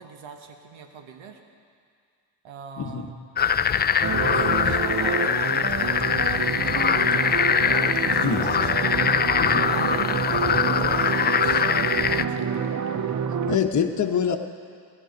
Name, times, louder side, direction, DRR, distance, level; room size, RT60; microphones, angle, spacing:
voice 1, 0.0-1.4 2.4-3.2 4.2-8.8 9.7-12.9, right 6 dB, 75° right, 5 dB, 1.4 m, -42 dB
sound 1, 3.4-12.2, left 7 dB, 25° left, 0.3 m, -22 dB
sound 2, 4.0-13.6, right 7 dB, 40° right, 0.7 m, -28 dB
voice 2, 8.2-8.6 9.4-9.7 13.5-14.4, left 7 dB, 40° left, 2 dB, 1.1 m, -25 dB
17.5 x 11.0 x 5.2 m, 2.2 s
supercardioid pair, 55°, 47 cm